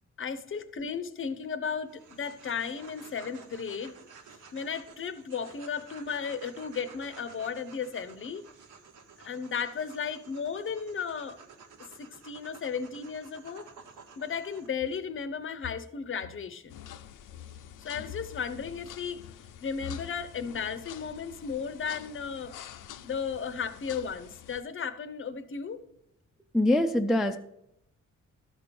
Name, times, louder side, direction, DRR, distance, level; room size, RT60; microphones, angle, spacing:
voice 1, 0.2-3.9 4.5-8.4 9.2-11.4 12.0-13.7 14.2-16.7 17.8-19.3 19.6-22.6 23.0-25.8, left 6 dB, 40° left, 13 dB, 0.6 m, -35 dB
sound 1, 1.9-14.7, right 5 dB, 80° right, 1.2 m, -52 dB
sound 2, 16.7-24.6, left 10 dB, 85° left, 0.6 m, -46 dB
voice 2, 26.5-27.4, left 1 dB, ahead, 5 dB, 0.3 m, -23 dB
12.5 x 4.5 x 5.2 m, 0.80 s
wide cardioid pair, 145°, 31 cm